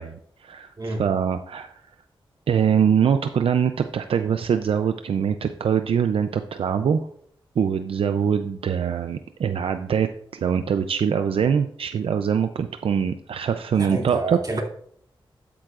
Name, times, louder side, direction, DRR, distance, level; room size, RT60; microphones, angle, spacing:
voice 1, 0.0-1.8 2.5-7.0 7.6-14.4, right 7 dB, 80° right, 8 dB, 0.5 m, -23 dB
voice 2, 13.8-14.6, right 2 dB, 45° right, 0 dB, 2.5 m, -29 dB
12.5 x 8.7 x 2.5 m, 0.65 s
wide cardioid pair, 95°, 10 cm